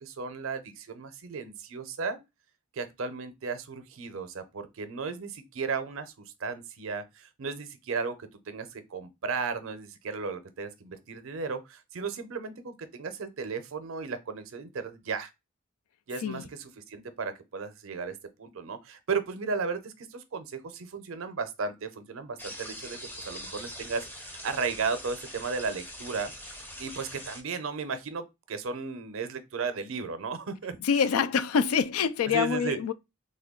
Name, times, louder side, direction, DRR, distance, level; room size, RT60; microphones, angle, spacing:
voice 1, 0.0-2.2 2.7-6.1 6.4-8.2 8.5-15.3 16.1-26.3 26.8-30.8 32.2-32.8, right 4 dB, 70° right, 0.5 m, -35 dB
sound 1, 22.4-27.4, equal, 10° left, 0.5 m, -43 dB
voice 2, 30.8-32.9, left 6 dB, 85° left, 0.3 m, -26 dB
3.3 x 2.2 x 3.6 m
head